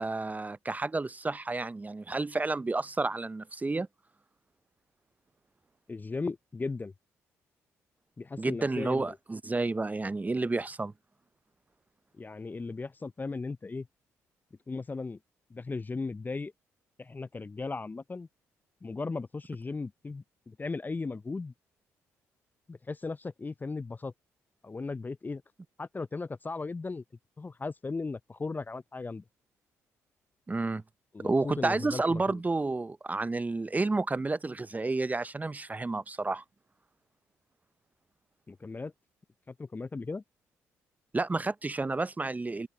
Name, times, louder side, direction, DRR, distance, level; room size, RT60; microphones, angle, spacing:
voice 1, 0.0-3.9 8.4-10.9 30.5-30.8 31.2-36.4 41.1-42.7, right 3 dB, 20° right, 0.7 m, -30 dB
voice 2, 5.9-6.9 8.2-9.2 12.2-13.9 14.7-15.2 15.5-16.5 17.0-18.3 18.8-21.5 22.7-24.1 24.6-25.4 25.8-27.0 27.4-29.2 31.1-32.4 38.5-38.9 39.5-40.2, left 3 dB, 25° left, 0.6 m, -37 dB
open air
hypercardioid pair, 45°, 7 cm